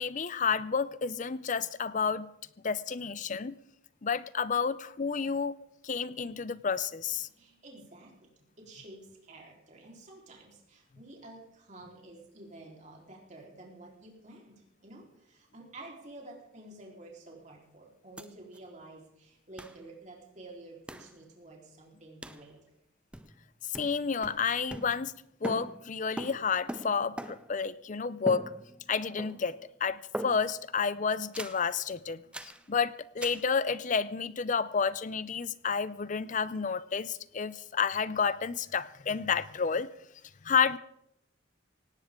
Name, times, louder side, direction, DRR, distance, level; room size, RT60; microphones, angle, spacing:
voice 1, 0.0-2.3 2.6-3.5 4.0-5.5 5.8-7.3 23.7-25.1 25.4-28.5 28.9-29.6 29.8-39.9 40.4-40.8, left 6 dB, 40° left, 17 dB, 0.5 m, -30 dB
voice 2, 7.3-8.1 8.6-22.6 32.2-32.3, right 2 dB, 35° right, -1 dB, 4.0 m, -50 dB
sound 1, 18.2-18.3 18.5-18.6 19.6-19.8 20.9-21.1 22.2-22.5 23.1-23.5 23.7-25.2 25.4-27.6 28.3-28.9 29.2-29.6 30.1-30.7 31.3-31.7 32.3-32.6 33.2-33.5, right 1 dB, 5° right, 0.6 m, -41 dB
18.5 x 17.5 x 3.7 m, 0.77 s
head